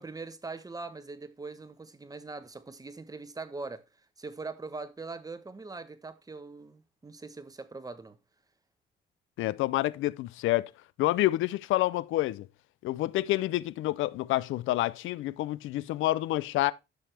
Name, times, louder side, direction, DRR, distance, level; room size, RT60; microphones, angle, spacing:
voice 1, 0.0-3.8 4.2-8.2, right 3 dB, 20° right, 1.1 m, -41 dB
voice 2, 9.4-10.7 11.0-12.5 12.8-16.7, left 16 dB, 80° left, 0.4 m, -28 dB
11.5 x 5.9 x 3.4 m
cardioid pair, 90°, 20 cm